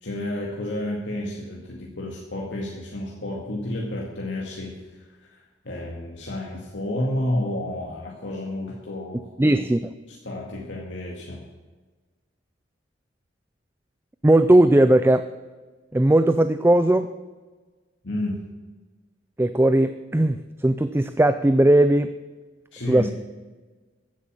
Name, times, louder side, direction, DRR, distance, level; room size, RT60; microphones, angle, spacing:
voice 1, 0.0-9.3 10.1-11.4 18.0-18.4 22.7-23.1, left 1 dB, 80° left, -2 dB, 2.0 m, -31 dB
voice 2, 9.4-9.8 14.2-15.3 15.9-17.1 19.4-22.1 22.9-23.1, right 1 dB, 10° right, 11 dB, 0.4 m, -18 dB
15.0 x 8.4 x 7.4 m, 1.3 s
head